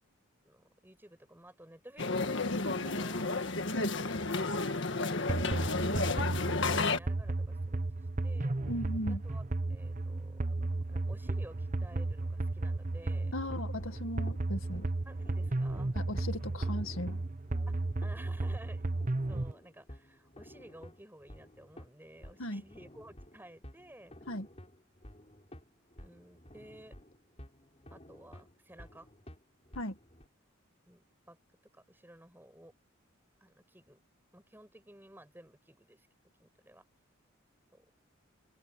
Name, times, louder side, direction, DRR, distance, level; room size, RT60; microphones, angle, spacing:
voice 1, 0.4-4.3 5.0-8.5 9.2-10.5 10.9-13.4 15.1-16.0 17.7-18.9 19.3-24.1 26.0-26.9 27.9-29.1 30.9-31.4 31.7-32.7 33.4-34.0 34.3-36.1 36.4-36.8 37.7-37.9, right 1 dB, 10° right, 7.1 m, -55 dB
sound 1, 2.0-7.0, left 3 dB, 60° left, 1.7 m, -32 dB
sound 2, 5.3-19.5, right 2 dB, 40° right, 0.9 m, -34 dB
voice 2, 8.7-9.2 13.3-14.9 15.9-17.2 22.4-22.6 24.3-24.5 29.8-30.0, left 1 dB, 75° left, 2.0 m, -37 dB
sound 3, 13.7-30.3, equal, 30° left, 5.8 m, -53 dB
open air
head